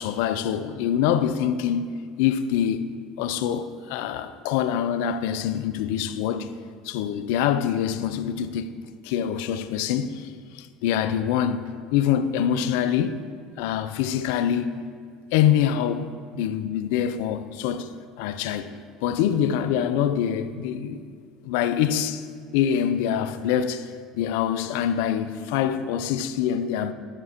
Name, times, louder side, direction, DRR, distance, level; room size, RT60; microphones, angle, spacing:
voice 1, 0.0-1.9 2.2-2.9 3.2-6.5 6.8-8.7 9.0-13.2 13.6-14.8 15.3-17.9 18.2-18.7 19.0-21.0 21.4-22.3 22.5-26.9, left 9 dB, 75° left, 0.4 m, -25 dB
11.5 x 5.8 x 2.9 m
hypercardioid pair, 85°, 0 cm